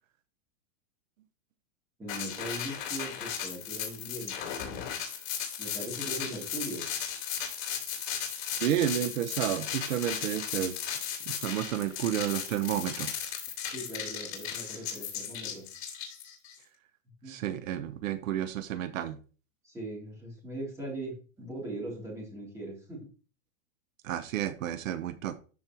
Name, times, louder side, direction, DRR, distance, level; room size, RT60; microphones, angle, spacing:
voice 1, 2.0-4.5 5.6-6.9 13.6-15.7 17.2-17.3 19.6-23.0, right 1 dB, 5° right, -4 dB, 3.1 m, -40 dB
sound 1, 2.1-16.5, left 9 dB, 55° left, 3.2 m, -36 dB
voice 2, 8.6-10.7 11.3-13.1 17.3-19.2 24.0-25.3, right 11 dB, 80° right, 11 dB, 1.0 m, -31 dB
13.0 x 5.2 x 3.0 m, 0.37 s
supercardioid pair, 170°, 39 cm